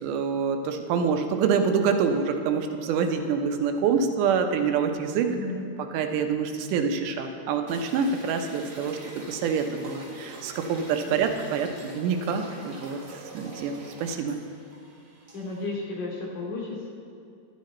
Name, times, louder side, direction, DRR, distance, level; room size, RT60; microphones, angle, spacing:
voice 1, 0.0-5.4 5.9-9.0 9.3-14.4, right 6 dB, 90° right, 6 dB, 2.3 m, -26 dB
voice 2, 5.3-5.6 11.0-11.2 15.3-16.9, left 3 dB, 55° left, -5 dB, 3.5 m, -34 dB
sound 1, 7.7-15.7, right 2 dB, 45° right, 1.1 m, -45 dB
11.5 x 10.5 x 4.2 m, 2.4 s
omnidirectional pair, 3.6 m